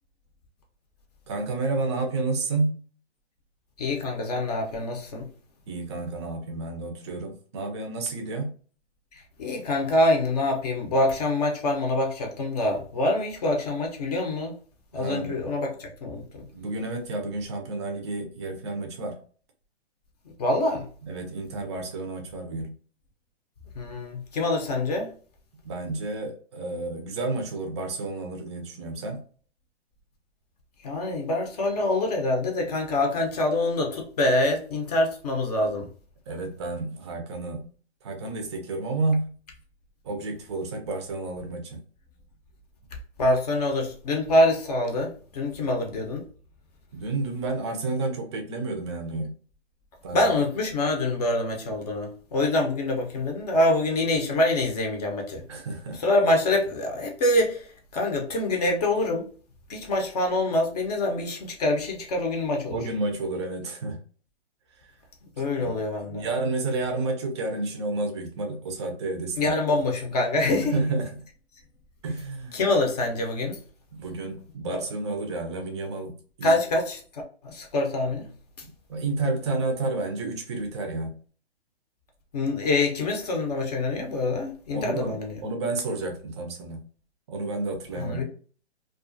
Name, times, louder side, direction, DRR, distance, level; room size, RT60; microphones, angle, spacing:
voice 1, 1.3-2.8 5.7-8.5 14.9-15.4 16.5-19.2 21.0-22.7 25.6-29.2 36.3-37.7 38.0-39.3 40.0-41.8 45.6-45.7 46.9-49.3 50.0-50.3 55.5-56.0 62.7-64.0 65.4-65.7 66.1-69.5 70.6-71.3 72.0-72.6 73.9-76.6 78.9-81.1 84.7-86.8 87.3-88.2, right 3 dB, 25° right, 0.4 m, -30 dB
voice 2, 3.8-5.3 9.4-14.6 14.9-16.4 20.4-20.8 23.7-25.1 30.8-35.9 43.2-46.2 50.1-55.4 56.0-57.7 57.9-59.3 59.7-62.8 65.4-66.3 69.4-70.7 72.5-73.6 76.4-78.3 82.3-85.4 88.0-88.2, left 2 dB, 35° left, 0.6 m, -25 dB
2.3 x 2.3 x 2.5 m
hypercardioid pair, 140°, 34 cm